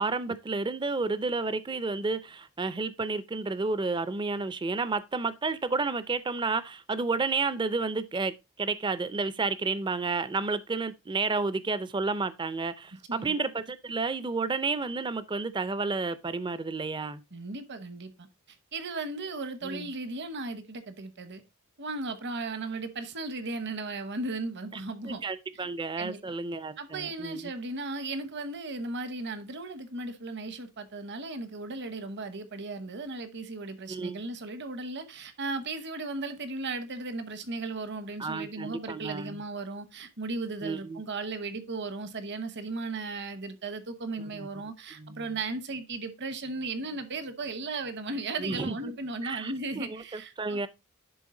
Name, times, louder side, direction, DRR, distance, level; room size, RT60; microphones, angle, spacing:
voice 1, 0.0-17.2 19.6-19.9 24.7-27.5 33.9-34.2 38.2-39.4 40.6-41.0 44.3-44.5 45.0-45.4 48.4-49.0 49.2-50.7, right 3 dB, 20° right, 0.4 m, -31 dB
voice 2, 17.3-18.3 18.7-21.4 21.8-25.2 25.6-25.7 26.0-26.3 26.8-50.6, right 3 dB, 55° right, 1.0 m, -36 dB
11.0 x 3.7 x 3.7 m
head